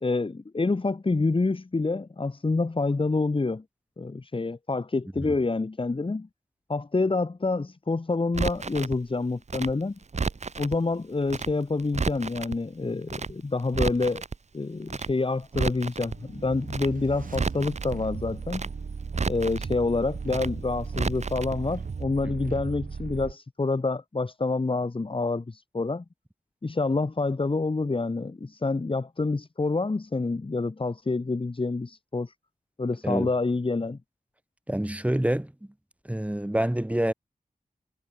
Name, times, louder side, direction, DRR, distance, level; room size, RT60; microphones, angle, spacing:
voice 1, 0.0-3.6 4.0-6.3 6.7-10.0 10.6-14.2 14.5-18.7 19.3-26.0 26.6-32.3 32.8-34.0, left 3 dB, 40° left, 1.5 m, -27 dB
Crackle, 8.3-9.0 9.5-10.8 11.3-11.5 11.8-12.6 13.1-13.3 13.6-14.4 14.9-15.1 15.4-16.2 16.7-16.9 17.2-18.0 18.5-18.7 19.0-19.8 20.3-20.5 20.8-21.6 21.8-21.9, right 4 dB, 55° right, 1.2 m, -31 dB
sound 1, 16.0-23.3, right 5 dB, 75° right, 2.7 m, -36 dB
voice 2, 22.2-22.6 33.0-33.3 34.7-35.5 36.0-37.1, right 1 dB, 10° right, 1.7 m, -27 dB
wide cardioid pair, 60°, 14 cm